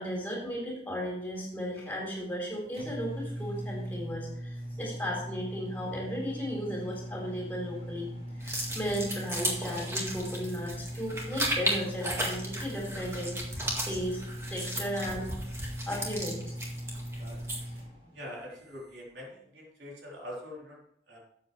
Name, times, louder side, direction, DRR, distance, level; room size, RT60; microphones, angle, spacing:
voice 1, 0.0-8.1 8.4-15.3 15.9-16.6, equal, 10° left, -2 dB, 3.5 m, -35 dB
sound 1, 2.2-19.1, equal, 35° right, 4.4 m, -40 dB
sound 2, 8.4-17.8, right 1 dB, 15° right, 1.9 m, -35 dB
voice 2, 18.1-21.2, left 1 dB, 80° right, -3 dB, 3.7 m, -44 dB
13.0 x 7.6 x 3.3 m, 0.72 s
head